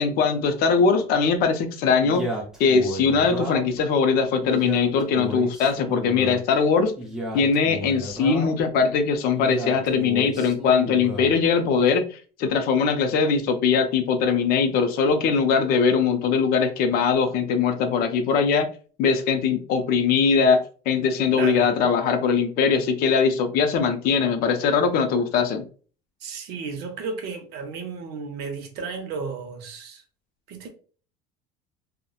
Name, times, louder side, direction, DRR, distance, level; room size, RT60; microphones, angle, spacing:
voice 1, 0.0-2.3 2.6-6.9 7.3-18.7 19.0-20.6 20.9-25.6, left 5 dB, 50° left, 0.4 m, -21 dB
Male speech man speaking, 2.0-3.8 4.4-6.4 7.0-8.7 9.4-11.3, right 1 dB, 5° right, 0.6 m, -33 dB
voice 2, 26.2-30.0 30.5-30.7, right 5 dB, 55° right, 0.6 m, -33 dB
2.7 x 2.0 x 2.3 m
cardioid pair, 150°, 20 cm